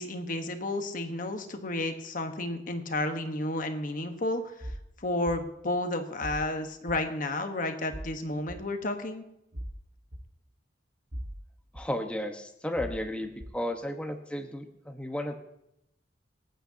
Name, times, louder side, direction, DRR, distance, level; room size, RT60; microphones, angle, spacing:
voice 1, 0.0-9.2, left 2 dB, 50° left, 6 dB, 1.3 m, -32 dB
sound 1, 4.6-4.8 5.3-5.4 6.2-6.5 6.9-7.0 7.9-8.1 8.5-8.6 9.5-9.7 10.1-10.2 11.1-11.4 11.7-11.8 12.8-13.0 13.4-13.5, equal, 50° right, 1.5 m, -39 dB
voice 2, 11.7-15.4, left 1 dB, 5° left, 5 dB, 1.2 m, -34 dB
27.0 x 9.0 x 2.9 m, 0.84 s
head